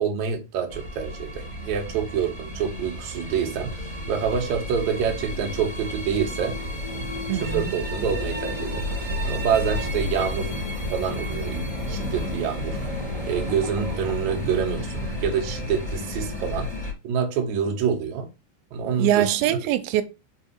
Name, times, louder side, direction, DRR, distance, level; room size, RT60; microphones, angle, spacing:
voice 1, 0.0-3.8 4.1-6.6 6.9-7.1 7.4-8.8 9.2-10.5 10.9-12.8 13.3-16.7 17.0-18.3 18.7-19.6, right 7 dB, 60° right, 2.1 m, -27 dB
sound 1, 0.7-16.9, left 1 dB, 10° left, 2.3 m, -31 dB
voice 2, 7.3-7.7 19.0-20.0, right 12 dB, 85° right, 2.9 m, -23 dB
sound 2, 12.5-15.4, equal, 15° right, 1.3 m, -43 dB
5.6 x 4.7 x 4.4 m
omnidirectional pair, 5.1 m